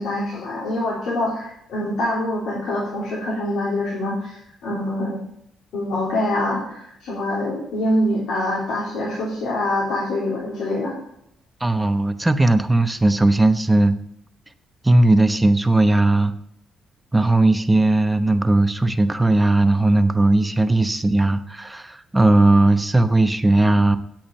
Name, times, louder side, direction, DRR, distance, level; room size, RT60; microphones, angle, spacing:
voice 1, 0.0-5.2 5.7-11.0, left 1 dB, 85° left, -6 dB, 3.5 m, -25 dB
voice 2, 11.6-14.0 14.8-16.3 17.1-24.0, right 2 dB, 10° right, 9 dB, 0.9 m, -17 dB
8.9 x 8.5 x 7.0 m, 0.75 s
cardioid pair, 90°, 0 cm